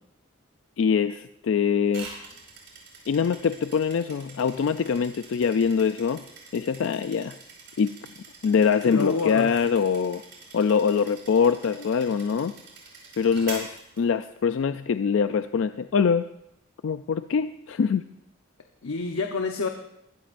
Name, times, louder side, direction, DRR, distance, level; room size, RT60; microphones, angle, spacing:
voice 1, 0.8-2.1 3.1-6.2 6.5-7.3 7.8-7.9 8.4-10.2 10.5-12.5 13.2-16.3 16.8-18.0, left 6 dB, 65° left, 11 dB, 0.3 m, -23 dB
sound 1, 1.9-14.6, right 4 dB, 55° right, 4.9 m, -45 dB
voice 2, 8.8-9.5 11.7-11.8 18.8-19.7, left 3 dB, 85° left, 5 dB, 0.8 m, -28 dB
21.5 x 14.0 x 2.5 m, 0.81 s
head